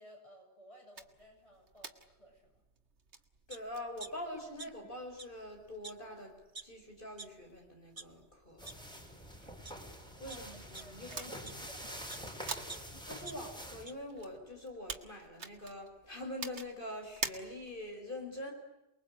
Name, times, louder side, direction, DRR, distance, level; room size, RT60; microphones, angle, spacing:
voice 1, 0.0-2.6 8.6-9.0 10.1-10.4 10.8-12.7, equal, 30° left, 1 dB, 7.7 m, -58 dB
sound 1, 0.9-17.9, right 4 dB, 75° right, 2.0 m, -49 dB
voice 2, 3.5-6.3 6.6-8.6 10.2-11.3 13.0-18.5, left 1 dB, 50° left, 3 dB, 5.1 m, -44 dB
sound 2, 3.5-3.6 4.0-4.9 5.2-5.3 5.8-5.9 6.5-6.6 7.2-7.3 7.8-8.0 8.7-8.8 9.4-9.7 10.3-12.3 12.7-13.9 14.3-14.4, right 3 dB, 25° right, 1.0 m, -48 dB
sound 3, 8.6-13.8, equal, 5° left, 5.3 m, -46 dB
28.5 x 22.0 x 8.7 m, 0.95 s
omnidirectional pair, 1.2 m